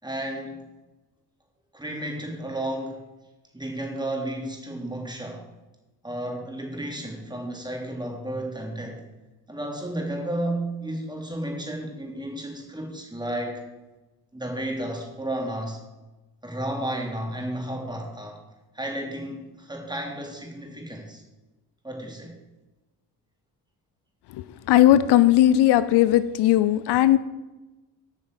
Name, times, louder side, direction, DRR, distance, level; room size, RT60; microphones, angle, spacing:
voice 1, 0.0-0.7 1.7-3.0 3.5-5.4 6.0-9.0 9.5-13.6 14.3-15.8 16.4-18.4 18.7-21.2 21.8-22.3, right 1 dB, 10° right, 0 dB, 3.0 m, -32 dB
voice 2, 24.3-27.2, left 13 dB, 75° left, 14 dB, 0.6 m, -18 dB
8.9 x 5.8 x 7.8 m, 1.1 s
cardioid pair, 85°, 40 cm